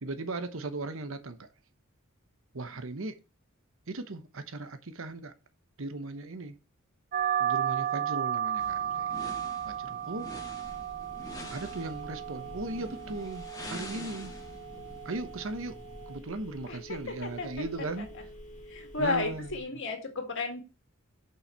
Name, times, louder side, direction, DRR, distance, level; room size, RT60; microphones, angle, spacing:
voice 1, 0.0-1.5 2.5-3.2 3.9-5.3 5.8-6.6 7.4-9.3 9.6-10.6 11.5-14.3 15.0-15.8 16.1-18.1 19.0-19.5, right 2 dB, 70° right, 1.0 m, -37 dB
sound 1, 7.1-16.2, right 10 dB, 40° right, 0.4 m, -34 dB
sound 2, 8.6-16.2, left 1 dB, 20° left, 1.4 m, -46 dB
Telephone, 10.6-19.6, equal, 35° left, 1.5 m, -48 dB
voice 2, 16.7-17.6 18.0-18.1 18.7-20.6, left 3 dB, 65° left, 2.0 m, -33 dB
6.3 x 5.7 x 4.4 m
head